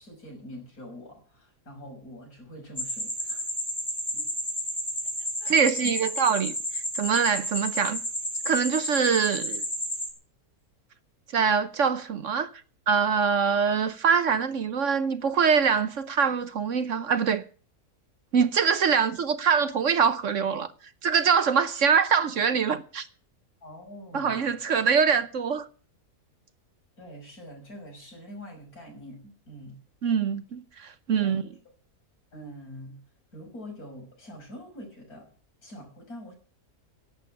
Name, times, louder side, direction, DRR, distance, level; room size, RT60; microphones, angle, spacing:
voice 1, 0.0-3.5 4.1-4.2 5.4-6.0 23.6-24.5 27.0-29.8 31.2-31.5 32.3-33.0 33.3-35.3 35.6-36.3, equal, 70° left, 6.7 m, -44 dB
sound 1, 2.8-10.1, equal, 10° left, 3.0 m, -32 dB
voice 2, 5.5-8.0 8.4-9.6 11.3-12.5 12.9-17.4 18.3-20.7 21.0-23.1 24.1-25.7 30.0-31.4, right 6 dB, 60° right, 1.1 m, -24 dB
11.5 x 8.6 x 9.8 m
omnidirectional pair, 1.6 m